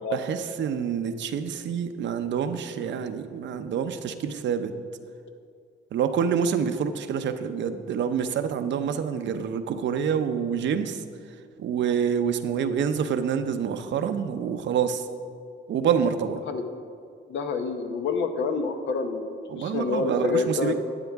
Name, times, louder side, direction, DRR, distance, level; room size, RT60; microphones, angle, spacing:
voice 1, 0.1-4.7 5.9-11.0 11.6-15.1 15.7-16.4 19.5-20.7, right 7 dB, 65° right, 9 dB, 0.7 m, -27 dB
voice 2, 17.3-20.7, left 4 dB, 70° left, 6 dB, 1.0 m, -28 dB
12.0 x 8.8 x 3.5 m, 2.3 s
cardioid pair, 90°, 20 cm